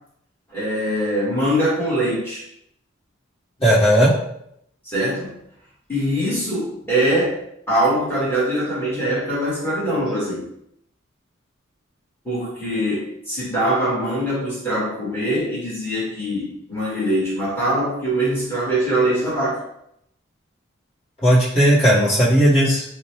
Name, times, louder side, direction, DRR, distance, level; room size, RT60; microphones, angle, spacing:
voice 1, 0.5-2.4 4.8-5.4 5.9-10.4 12.2-19.7, right 1 dB, 10° left, -8 dB, 1.5 m, -23 dB
voice 2, 3.6-4.1 21.2-22.8, equal, 30° left, -11 dB, 1.3 m, -15 dB
5.0 x 2.2 x 3.0 m, 0.74 s
head